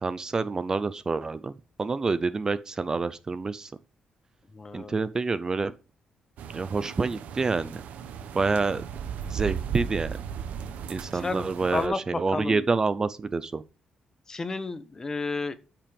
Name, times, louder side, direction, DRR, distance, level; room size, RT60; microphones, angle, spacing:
voice 1, 0.0-3.7 4.7-5.7 6.5-7.8 8.3-8.8 9.3-10.2 10.9-13.6, right 4 dB, 25° right, 0.6 m, -28 dB
voice 2, 4.5-4.9 11.1-12.6 14.3-15.5, left 3 dB, 25° left, 1.1 m, -32 dB
sound 1, 6.4-11.9, right 7 dB, 85° right, 1.2 m, -36 dB
13.0 x 6.0 x 5.2 m
cardioid pair, 135°, 2 cm